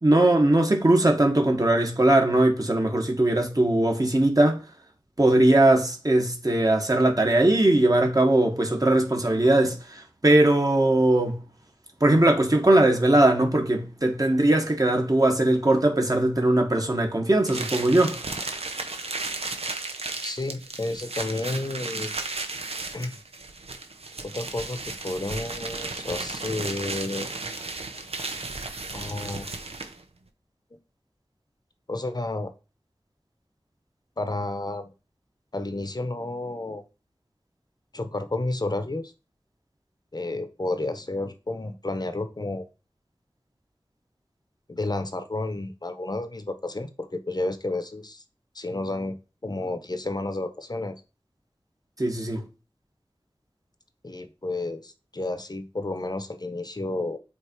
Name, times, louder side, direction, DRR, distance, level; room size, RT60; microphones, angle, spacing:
voice 1, 0.0-4.6 5.2-11.4 12.0-18.2 52.0-52.4, right 1 dB, 35° right, 1.6 m, -20 dB
sound 1, 17.5-30.0, right 3 dB, 85° right, 0.8 m, -34 dB
voice 2, 20.2-22.1 22.9-23.2 24.2-27.4 28.9-29.5 31.9-32.5 34.2-34.9 35.5-36.8 37.9-39.1 40.1-42.7 44.7-48.2 48.5-49.1 49.4-51.0 54.0-57.2, left 2 dB, 45° left, 0.9 m, -31 dB
8.0 x 2.8 x 4.5 m
wide cardioid pair, 45°, 10 cm